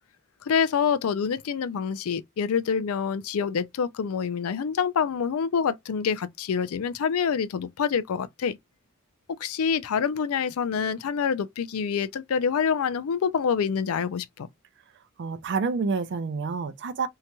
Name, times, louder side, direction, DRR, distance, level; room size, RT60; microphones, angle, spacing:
voice 1, 0.5-8.6 9.4-14.5, left 6 dB, 75° left, 0.4 m, -26 dB
voice 2, 15.2-17.1, right 4 dB, 55° right, 0.4 m, -28 dB
2.9 x 2.8 x 2.2 m
head